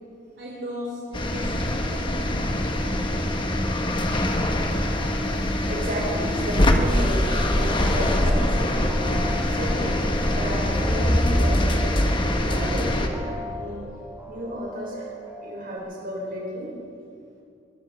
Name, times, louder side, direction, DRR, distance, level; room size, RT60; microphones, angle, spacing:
voice 1, 0.4-2.6, equal, 70° right, -5 dB, 3.2 m, -37 dB
sound 1, 1.1-13.1, left 1 dB, 30° left, 1.3 m, -23 dB
voice 2, 5.7-9.0 9.4-12.1 12.4-13.8 14.3-15.1 15.4-16.7, equal, 55° right, -3 dB, 4.4 m, -32 dB
sound 2, 7.3-15.8, left 1 dB, 10° right, 1.5 m, -39 dB
22.0 x 13.5 x 4.4 m, 2.6 s
head